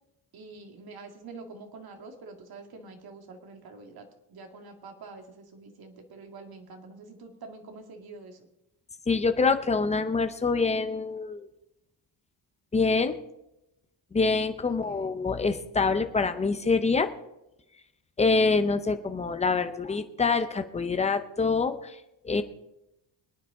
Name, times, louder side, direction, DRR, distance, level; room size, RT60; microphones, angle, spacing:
voice 1, 0.3-8.5 14.7-15.1, right 3 dB, 50° right, 3 dB, 2.2 m, -46 dB
voice 2, 9.1-11.5 12.7-13.1 14.1-17.1 18.2-22.4, left 4 dB, 15° left, 9 dB, 0.6 m, -25 dB
24.5 x 9.4 x 3.7 m, 0.90 s
cardioid pair, 175°, 46 cm